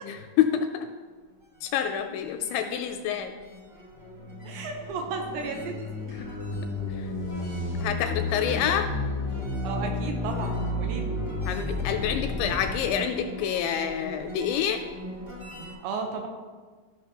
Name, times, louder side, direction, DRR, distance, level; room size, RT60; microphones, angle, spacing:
voice 1, 0.0-0.9 1.6-3.3 6.0-6.3 6.9-7.1 7.8-8.9 11.5-14.8, left 9 dB, 85° left, 6 dB, 2.7 m, -28 dB
sound 1, 1.3-15.7, left 1 dB, 25° right, 0.7 m, -43 dB
sound 2, 4.1-12.9, left 2 dB, 45° left, 0.6 m, -32 dB
voice 2, 4.4-5.7 9.6-11.1 15.8-16.3, right 4 dB, 80° right, 3 dB, 2.9 m, -33 dB
sound 3, 6.1-8.3, left 2 dB, 50° right, 1.2 m, -44 dB
13.5 x 5.8 x 2.9 m, 1.4 s
omnidirectional pair, 5.4 m